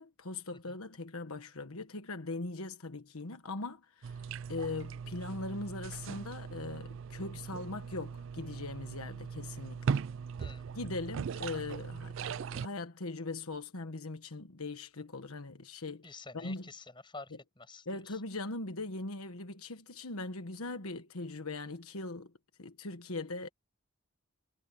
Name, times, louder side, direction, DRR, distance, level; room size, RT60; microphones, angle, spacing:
voice 1, 0.0-4.2 4.5-10.0 10.7-16.1 16.3-16.6 17.9-22.3 22.6-23.5, left 3 dB, 80° left, 1.4 m, -40 dB
sound 1, 4.0-12.7, right 6 dB, 60° right, 0.3 m, -39 dB
voice 2, 10.4-10.7 16.0-18.2, left 3 dB, 20° left, 7.0 m, -49 dB
head